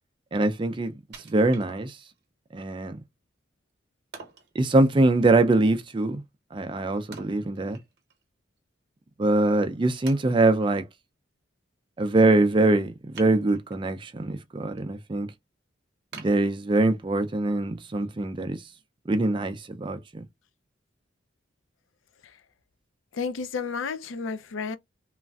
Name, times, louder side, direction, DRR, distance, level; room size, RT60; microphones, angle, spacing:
voice 1, 0.3-0.9 1.3-2.0 2.5-3.0 4.6-6.2 6.5-7.8 9.2-10.8 12.0-15.3 16.1-18.6 19.1-20.2, right 2 dB, 25° right, 0.3 m, -23 dB
Wood, 1.1-2.2 2.7-2.8 4.1-4.5 7.1-8.2 8.6-8.7 9.3-9.4 10.1-10.7 13.1-13.9 14.4-14.8 15.2-15.3 16.1-17.1 17.6-17.7, right 5 dB, 55° right, 0.8 m, -47 dB
voice 2, 23.1-24.8, left 5 dB, 85° left, 0.4 m, -32 dB
3.1 x 2.5 x 2.3 m
head